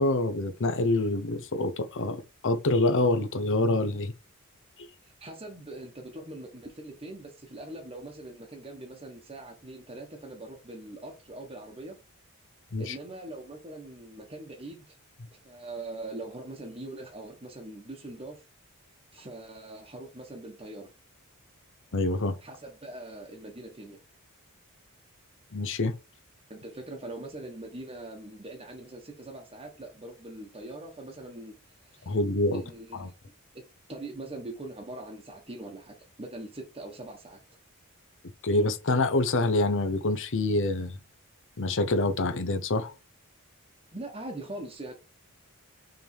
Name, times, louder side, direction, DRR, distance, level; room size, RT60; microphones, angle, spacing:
voice 1, 0.0-4.1 12.7-12.9 21.9-22.4 25.5-25.9 32.1-32.6 33.0-33.1 38.4-41.0 41.6-42.9, left 2 dB, 60° left, 0.8 m, -26 dB
voice 2, 5.0-12.0 12.8-15.0 15.4-18.4 19.1-20.9 22.4-24.0 26.5-31.5 31.8-32.2 32.5-33.1 33.5-33.6 33.9-37.4 43.9-44.9, right 2 dB, 25° right, 1.2 m, -42 dB
5.8 x 3.5 x 4.6 m
head